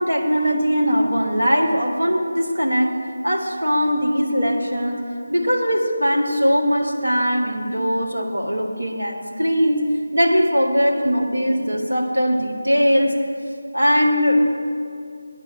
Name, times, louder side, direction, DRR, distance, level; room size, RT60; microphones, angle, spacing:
voice 1, 0.0-3.0 3.2-5.0 5.3-9.9 10.1-13.2 13.7-14.4, equal, 75° right, 1 dB, 1.5 m, -20 dB
9.7 x 8.6 x 6.2 m, 2.4 s
figure-of-eight pair, 165°, 0 cm